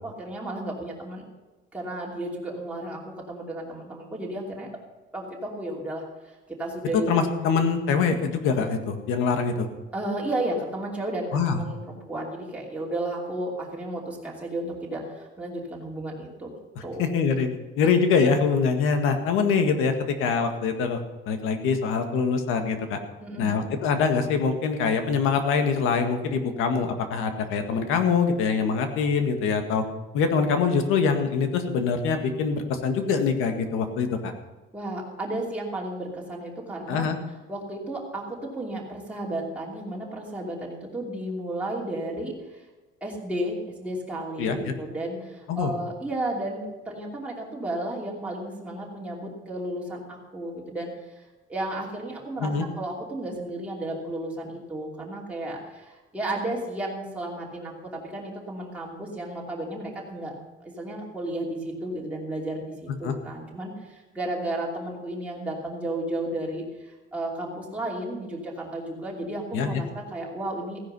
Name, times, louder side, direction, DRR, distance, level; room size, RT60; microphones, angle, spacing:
voice 1, 0.0-1.3 1.7-4.7 5.1-7.2 9.9-16.5 16.8-17.0 23.2-23.6 34.7-37.1 37.5-42.6 43.0-51.2 51.5-60.4 60.6-70.8, right 1 dB, 5° right, -4 dB, 2.8 m, -33 dB
voice 2, 7.1-9.7 11.3-11.6 17.0-17.5 17.8-21.0 21.3-23.0 23.4-29.9 30.1-34.3 36.9-37.2 44.4-44.6 45.5-45.7 52.4-52.6 63.0-63.2 69.5-69.8, left 5 dB, 80° left, 6 dB, 1.8 m, -24 dB
15.5 x 10.0 x 5.5 m, 1.2 s
cardioid pair, 175°, 21 cm